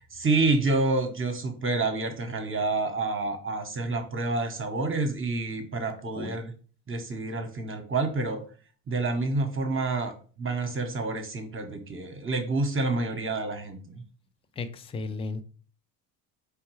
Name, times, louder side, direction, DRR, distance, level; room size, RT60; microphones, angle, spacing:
voice 1, 0.0-6.5 6.9-8.4 8.9-14.0, right 3 dB, 25° right, 1.1 m, -28 dB
voice 2, 14.6-15.4, left 3 dB, 15° left, 0.4 m, -34 dB
4.3 x 3.5 x 3.1 m
hypercardioid pair, 60°, 47 cm